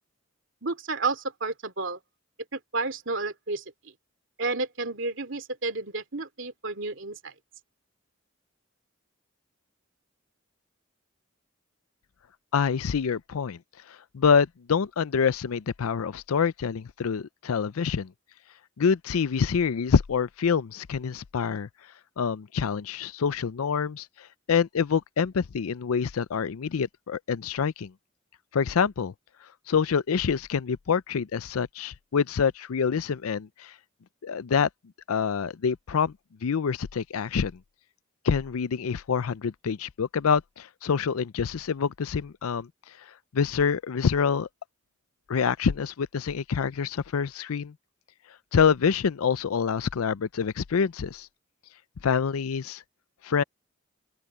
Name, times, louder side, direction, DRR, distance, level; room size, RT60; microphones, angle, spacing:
voice 1, 0.6-2.0 2.5-3.9 4.4-7.3, right 3 dB, 60° right, 2.6 m, -31 dB
voice 2, 12.5-13.6 14.1-18.1 18.8-21.7 22.2-24.1 24.5-27.9 28.5-29.1 29.7-33.7 34.2-34.7 35.1-36.1 36.4-37.5 38.2-42.7 43.3-44.5 45.3-47.7 48.5-51.3 52.0-52.8 53.2-53.4, left 6 dB, 90° left, 0.5 m, -26 dB
open air
head